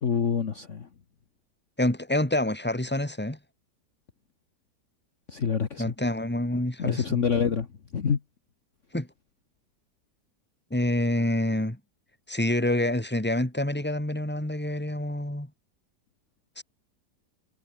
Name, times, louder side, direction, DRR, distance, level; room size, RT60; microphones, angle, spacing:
voice 1, 0.0-0.9 5.3-5.8 6.8-7.7 7.9-8.2, left 6 dB, 45° left, 1.6 m, -26 dB
voice 2, 1.8-3.4 5.8-7.2 8.9-9.1 10.7-11.8 12.3-15.5 16.6-16.7, left 1 dB, 5° left, 2.8 m, -27 dB
omnidirectional pair, 1.9 m